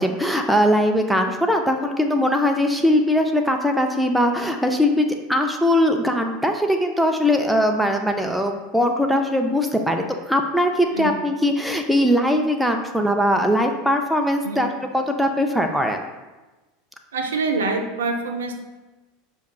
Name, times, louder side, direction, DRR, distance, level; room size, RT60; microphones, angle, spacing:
voice 1, 0.0-16.0, equal, ahead, 4 dB, 0.4 m, -20 dB
voice 2, 17.1-18.6, right 3 dB, 75° right, 4 dB, 0.4 m, -25 dB
6.3 x 2.3 x 2.2 m, 1.1 s
figure-of-eight pair, 80°, 0 cm